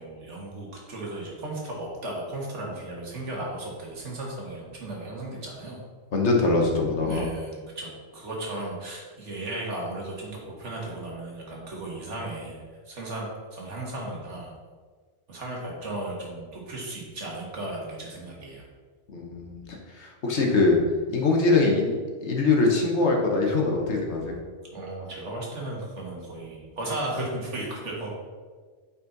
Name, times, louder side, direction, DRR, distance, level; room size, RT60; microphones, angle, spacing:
voice 1, 0.0-5.8 7.0-14.5 15.3-18.6 24.7-28.1, right 2 dB, 80° right, -2 dB, 1.9 m, -35 dB
voice 2, 6.1-7.3 19.1-20.8 21.1-24.3, left 3 dB, 70° left, 1 dB, 1.4 m, -23 dB
8.3 x 4.3 x 3.9 m, 1.5 s
omnidirectional pair, 1.2 m